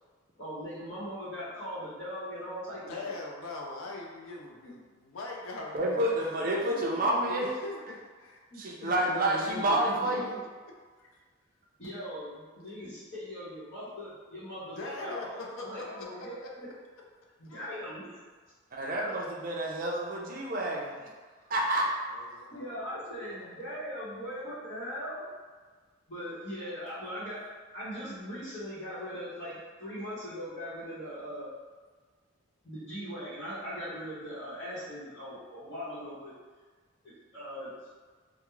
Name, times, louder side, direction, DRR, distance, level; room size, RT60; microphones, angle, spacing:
voice 1, 0.4-3.1 6.7-7.0 8.5-8.6 9.1-10.3 11.8-15.4 15.6-16.4 17.4-18.2 19.0-19.2 22.5-25.2 26.1-27.4 27.7-31.5 32.6-36.3 37.0-37.7, equal, 55° left, -13 dB, 0.9 m, -40 dB
voice 2, 2.9-6.3 7.2-8.4 8.8-9.1 11.0-11.1 14.6-16.5 17.4-17.7 18.7-18.9 20.9-21.0 22.1-23.5, left 2 dB, 80° left, -1 dB, 0.5 m, -42 dB
voice 3, 5.7-7.5 8.5-10.3 18.7-21.1 21.5-21.9, right 1 dB, 45° right, -3 dB, 0.4 m, -29 dB
2.3 x 2.1 x 3.0 m, 1.5 s
head